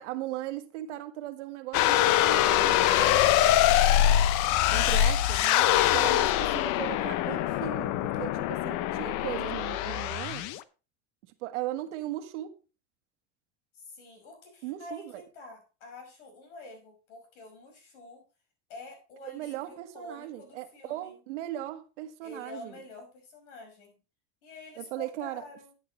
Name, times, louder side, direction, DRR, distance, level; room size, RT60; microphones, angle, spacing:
voice 1, 0.0-3.2 4.7-10.5 11.4-12.6 14.6-15.2 19.3-22.8 24.8-25.4, right 14 dB, 85° right, 1.4 m, -38 dB
sound 1, 1.7-10.6, left 12 dB, 60° left, 0.8 m, -24 dB
voice 2, 13.7-18.2 18.7-21.2 22.2-24.0 24.4-25.7, left 2 dB, 85° left, 5.6 m, -47 dB
12.5 x 8.4 x 3.1 m
supercardioid pair, 115°, 35 cm